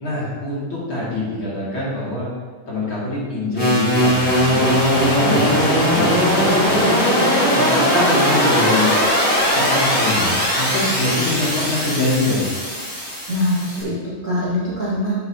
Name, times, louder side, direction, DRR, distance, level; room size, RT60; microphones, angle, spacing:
voice 1, 0.0-2.3 2.7-6.8 7.5-8.9 9.5-12.4, left 2 dB, 40° left, -8 dB, 2.6 m, -24 dB
sound 1, 3.6-13.8, equal, 20° left, 2.6 m, -19 dB
voice 2, 13.3-15.1, left 1 dB, 35° right, -9 dB, 1.3 m, -23 dB
11.0 x 7.9 x 2.8 m, 1.5 s
omnidirectional pair, 4.0 m